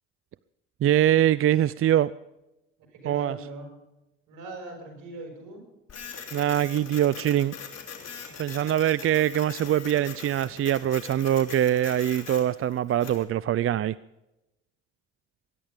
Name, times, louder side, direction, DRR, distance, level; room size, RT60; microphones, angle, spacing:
voice 1, 0.8-2.1 3.1-3.3 6.3-7.5 8.4-13.9, right 11 dB, 45° right, 19 dB, 0.5 m, -23 dB
voice 2, 2.8-3.7 4.3-5.6, right 3 dB, 75° right, 4 dB, 5.8 m, -40 dB
Printer, 5.9-13.2, left 6 dB, 50° left, 3.3 m, -42 dB
22.0 x 10.5 x 5.1 m, 0.94 s
hypercardioid pair, 55°, 32 cm